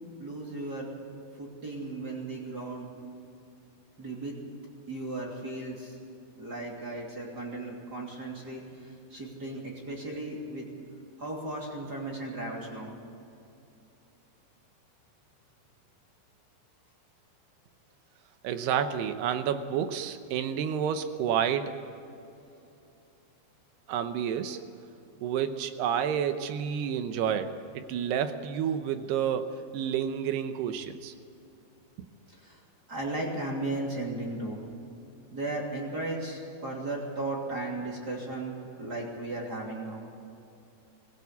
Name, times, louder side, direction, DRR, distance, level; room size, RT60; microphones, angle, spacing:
voice 1, 0.2-0.9 1.4-2.9 4.0-4.4 4.9-6.0 6.4-10.7 11.2-12.9 32.3-32.6 32.9-34.6 35.3-40.1, right 2 dB, 25° right, -1 dB, 2.8 m, -36 dB
voice 2, 18.4-21.8 23.9-24.6 25.2-29.5 29.7-31.1 32.0-32.1, right 8 dB, 75° right, 9 dB, 2.9 m, -30 dB
20.5 x 16.5 x 8.3 m, 2.7 s
omnidirectional pair, 4.9 m